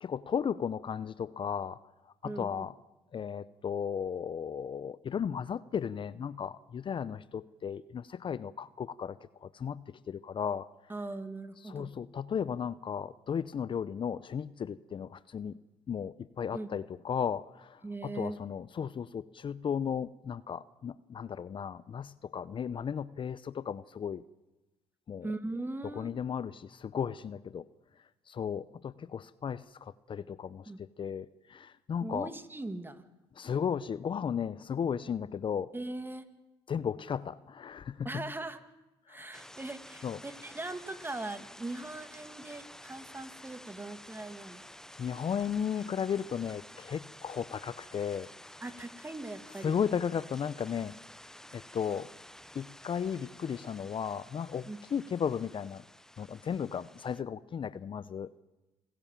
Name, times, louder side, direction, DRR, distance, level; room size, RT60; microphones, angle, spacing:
voice 1, 0.0-1.8 2.2-2.7 3.1-10.7 11.6-15.6 15.9-24.2 25.1-25.3 26.0-27.6 28.3-32.3 33.4-35.7 36.7-38.2 39.1-39.3 40.0-40.2 45.0-48.3 49.6-50.9 51.5-52.1 52.5-55.8 56.2-58.3, left 7 dB, 45° left, 17 dB, 0.7 m, -35 dB
voice 2, 2.2-2.6 10.9-11.9 16.5-16.7 17.8-18.4 25.2-26.1 30.7-30.8 32.0-33.0 35.7-36.2 38.0-38.6 39.1-44.6 48.6-49.7 54.7-54.8, right 2 dB, 15° right, 10 dB, 2.2 m, -40 dB
sound 1, 39.3-57.2, left 1 dB, 5° left, 0.9 m, -51 dB
28.0 x 15.5 x 7.5 m, 1.0 s
supercardioid pair, 65°, 12 cm